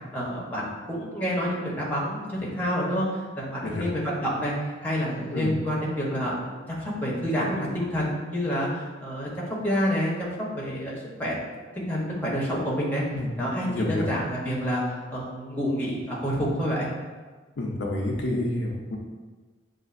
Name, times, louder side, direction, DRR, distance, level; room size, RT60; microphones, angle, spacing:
voice 1, 0.1-4.5 4.8-11.4 11.7-13.0 13.4-16.9, equal, 10° left, -5 dB, 0.8 m, -28 dB
voice 2, 13.7-14.1 17.6-19.0, left 1 dB, 60° left, -2 dB, 0.5 m, -28 dB
6.6 x 2.4 x 2.5 m, 1.3 s
head